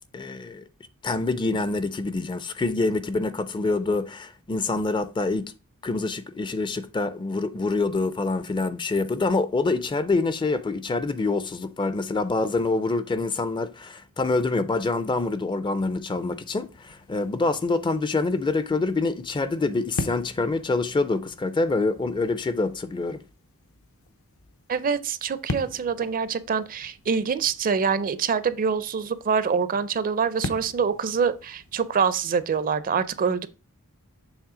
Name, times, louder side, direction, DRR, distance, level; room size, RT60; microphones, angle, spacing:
voice 1, 0.1-0.6 1.0-5.5 5.8-23.2, left 3 dB, 20° left, 0.4 m, -26 dB
sound 1, 16.1-32.6, left 2 dB, 70° left, 0.7 m, -41 dB
voice 2, 24.7-33.5, right 6 dB, 40° right, 0.4 m, -25 dB
7.3 x 3.2 x 4.9 m
head